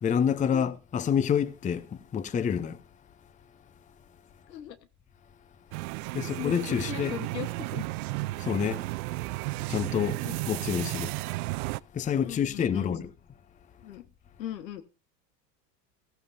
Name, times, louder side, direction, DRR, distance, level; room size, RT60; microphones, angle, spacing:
voice 1, 0.0-2.8 6.1-7.1 8.4-8.8 9.7-10.2 10.5-11.1 11.9-13.1, left 8 dB, 15° left, 0.6 m, -28 dB
sound 1, 5.7-11.8, right 21 dB, 65° right, 0.5 m, -33 dB
voice 2, 6.1-7.9 10.2-10.5 12.2-13.0 13.8-14.1 14.4-14.8, left 12 dB, 85° left, 1.4 m, -39 dB
16.0 x 14.5 x 2.6 m
hypercardioid pair, 100°, 49 cm